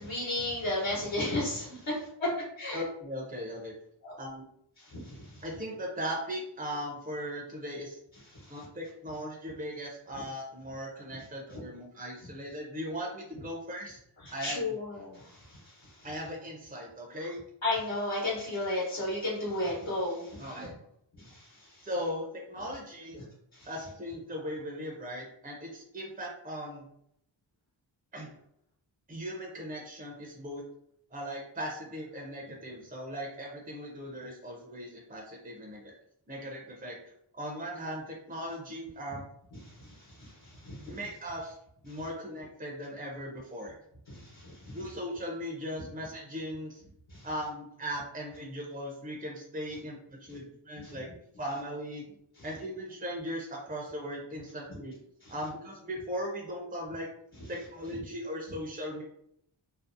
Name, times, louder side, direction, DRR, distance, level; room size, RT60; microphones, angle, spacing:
voice 1, 0.0-2.1 2.6-2.8 4.0-4.1 4.9-5.1 14.4-15.6 17.6-20.5 21.2-21.5 23.5-23.7 39.8-39.9 40.2-40.3 40.6-40.9 44.1-44.7 47.1-47.2 50.8-50.9, left 2 dB, 65° left, -8 dB, 1.0 m, -33 dB
voice 2, 2.7-3.7 4.2-4.4 5.4-8.0 8.5-14.0 14.3-14.8 16.0-17.4 20.4-20.7 21.8-23.3 23.7-26.9 28.1-28.3 29.1-30.6 31.1-35.9 36.3-37.0 37.3-39.2 40.9-41.6 41.8-43.7 44.7-46.8 47.2-51.1 51.4-52.1 52.4-55.0 55.3-57.1 57.5-59.0, equal, 20° right, -1 dB, 0.5 m, -38 dB
2.6 x 2.0 x 2.5 m, 0.73 s
wide cardioid pair, 70°, 48 cm